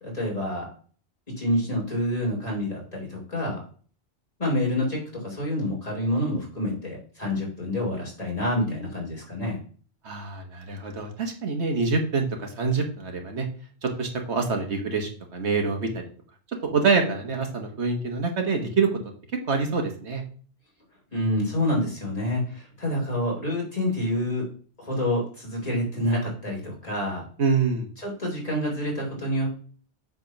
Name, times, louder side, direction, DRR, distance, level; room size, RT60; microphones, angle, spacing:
voice 1, 0.0-0.7 1.3-3.6 4.4-5.0 5.2-9.6 21.1-24.4 24.8-27.2 28.0-29.5, left 1 dB, 35° left, -2 dB, 3.3 m, -27 dB
voice 2, 10.0-13.5 13.8-16.0 16.6-18.9 19.5-20.2 27.4-27.9, right 4 dB, 80° right, 4 dB, 1.7 m, -26 dB
7.9 x 3.6 x 5.9 m, 0.42 s
omnidirectional pair, 1.1 m